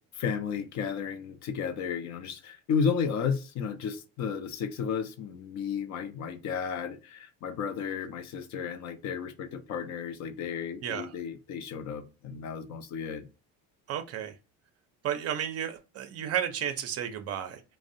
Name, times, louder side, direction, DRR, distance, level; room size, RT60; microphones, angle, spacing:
voice 1, 0.2-13.2, left 6 dB, 55° left, 0.5 m, -33 dB
voice 2, 13.9-14.3 15.0-17.6, right 9 dB, 45° right, 0.5 m, -32 dB
2.5 x 2.1 x 2.5 m
supercardioid pair, 100°, 35 cm